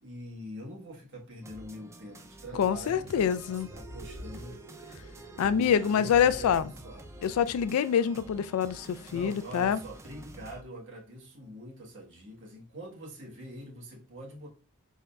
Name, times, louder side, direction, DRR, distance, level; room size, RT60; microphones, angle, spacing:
voice 1, 0.0-3.4 3.7-4.6 5.4-7.2 9.1-14.5, equal, 55° right, 1.2 m, -44 dB
sound 1, 1.4-10.6, right 2 dB, 15° right, 0.3 m, -49 dB
voice 2, 2.5-3.7 5.4-6.7 7.2-9.8, left 8 dB, 75° left, 0.3 m, -26 dB
sound 2, 2.7-7.6, right 1 dB, 30° left, 1.4 m, -47 dB
4.0 x 3.6 x 2.2 m
head